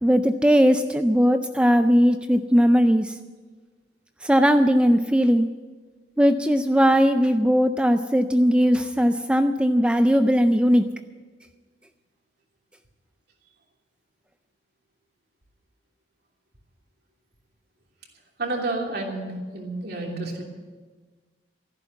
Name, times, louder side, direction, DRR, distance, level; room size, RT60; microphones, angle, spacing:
voice 1, 0.0-3.2 4.2-5.5 6.2-10.8, equal, 5° right, 8 dB, 0.4 m, -19 dB
voice 2, 18.4-20.4, right 2 dB, 60° right, 0 dB, 3.0 m, -30 dB
14.0 x 11.5 x 8.0 m, 1.4 s
head